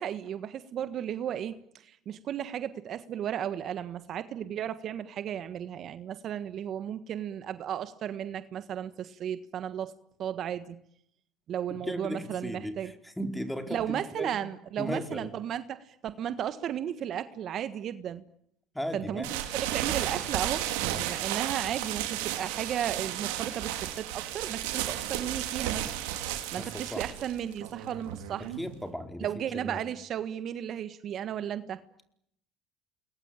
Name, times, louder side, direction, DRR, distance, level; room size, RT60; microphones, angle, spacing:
voice 1, 0.0-9.9 10.2-10.8 11.5-12.9 13.7-18.2 18.9-25.9 26.5-28.5 29.2-31.8, right 10 dB, 55° right, 12 dB, 1.5 m, -34 dB
voice 2, 11.8-14.4 14.8-15.3 18.7-19.3 26.6-27.0 28.4-29.3 29.5-29.8, equal, 5° left, 6 dB, 4.6 m, -36 dB
sound 1, 19.2-28.8, right 12 dB, 85° right, 4.5 m, -33 dB
29.0 x 21.5 x 9.1 m, 0.73 s
supercardioid pair, 90°, 0 cm